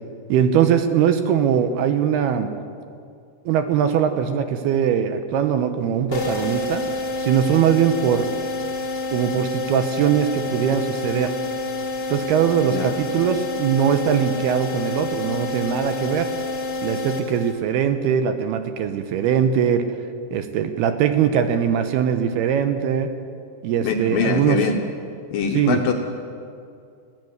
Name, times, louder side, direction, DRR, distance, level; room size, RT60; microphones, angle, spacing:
voice 1, 0.3-2.5 3.5-6.8 7.2-8.3 9.1-11.3 12.1-16.3 16.8-19.9 20.3-23.1 23.6-24.6 25.5-25.8, right 8 dB, 75° right, 8 dB, 2.7 m, -21 dB
sound 1, 6.1-17.8, left 3 dB, 35° left, 2.0 m, -28 dB
voice 2, 12.6-12.9 23.8-24.8 25.3-25.9, left 6 dB, 70° left, 3 dB, 2.3 m, -23 dB
21.5 x 16.0 x 7.9 m, 2.4 s
omnidirectional pair, 5.0 m